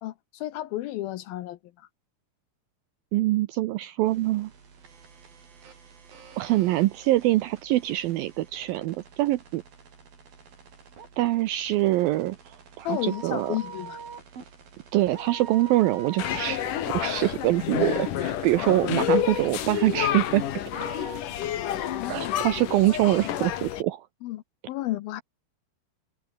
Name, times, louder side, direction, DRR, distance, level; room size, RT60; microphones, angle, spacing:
voice 1, 0.0-1.9 12.9-14.0 22.0-22.4 24.2-25.2, left 15 dB, 75° left, 2.4 m, -33 dB
voice 2, 3.1-4.5 6.4-9.6 11.2-13.6 14.9-16.7 16.9-20.4 22.1-24.1, right 16 dB, 85° right, 2.1 m, -24 dB
sound 1, 4.1-21.2, right 5 dB, 60° right, 6.5 m, -45 dB
sound 2, 16.2-23.8, left 11 dB, 60° left, 2.8 m, -29 dB
omnidirectional pair, 4.9 m